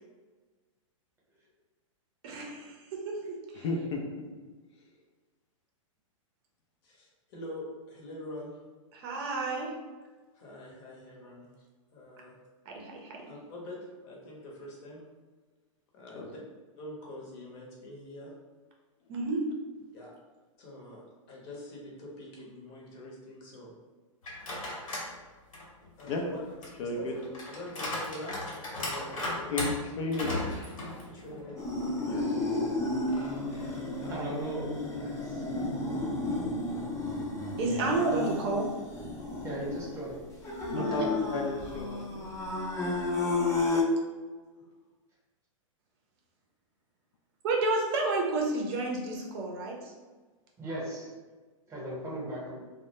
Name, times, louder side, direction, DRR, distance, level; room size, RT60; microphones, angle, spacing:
voice 1, 2.2-3.6 8.9-9.7 12.7-13.2 19.1-19.4 37.6-38.7 40.8-41.0 47.4-49.9, right 3 dB, 50° right, 0 dB, 0.6 m, -31 dB
voice 2, 3.6-4.0 16.1-16.3 26.1-26.2 26.8-27.1 29.5-30.4 32.0-32.2 35.3-35.4 40.7-42.0, left 3 dB, 60° left, 0 dB, 0.5 m, -33 dB
voice 3, 6.8-8.6 10.3-11.5 11.9-12.4 13.3-15.0 15.9-16.2 16.8-18.3 19.9-20.1 20.6-23.7 26.0-26.4 26.8-27.1 27.5-28.4 28.7-29.7 31.0-32.1 33.4-33.6 34.0-34.4 35.1-35.2 36.2-36.3 40.9-41.0, left 1 dB, 45° left, -3 dB, 0.8 m, -45 dB
sound 1, 24.2-25.1 25.5-31.6 32.0-32.1 33.1-34.6, left 1 dB, 80° left, 1.0 m, -37 dB
sound 2, 31.6-43.8, left 2 dB, 15° left, 0.6 m, -32 dB
voice 4, 34.1-35.4 37.7-37.8 39.4-40.2 50.6-51.1 51.7-52.6, right 1 dB, 15° right, -6 dB, 0.9 m, -38 dB
2.2 x 2.1 x 2.9 m, 1.3 s
hypercardioid pair, 120°, 17 cm